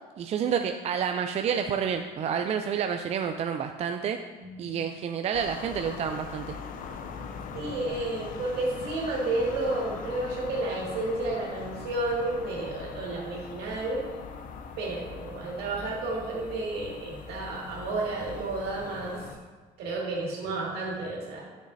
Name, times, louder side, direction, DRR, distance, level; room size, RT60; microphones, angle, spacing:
voice 1, 0.2-4.2 4.6-6.5, right 7 dB, 40° right, 6 dB, 0.4 m, -29 dB
voice 2, 4.4-4.9 7.5-14.0 14.8-19.2 19.8-21.5, right 2 dB, 70° right, -3 dB, 2.1 m, -31 dB
sound 1, 5.3-19.4, left 5 dB, 55° left, 0.6 m, -41 dB
9.1 x 6.3 x 2.7 m, 1.4 s
supercardioid pair, 95°, 17 cm